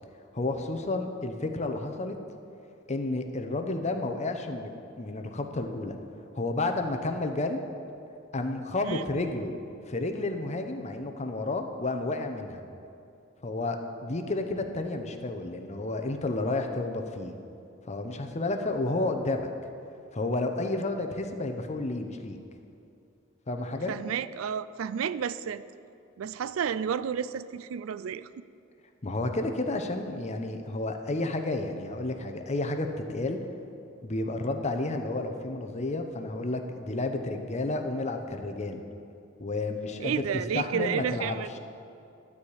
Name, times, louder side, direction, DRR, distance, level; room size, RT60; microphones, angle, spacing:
voice 1, 0.3-2.2 2.9-4.7 5.0-6.0 6.3-7.6 8.3-9.5 9.9-12.6 13.4-17.3 17.9-19.5 20.1-22.4 23.5-23.9 29.0-33.4 34.0-38.8 39.4-41.4, left 2 dB, 35° left, 6 dB, 0.8 m, -31 dB
voice 2, 23.9-25.6 26.2-28.3 40.0-41.5, right 7 dB, 80° right, 15 dB, 0.4 m, -31 dB
12.0 x 4.9 x 8.6 m, 2.6 s
head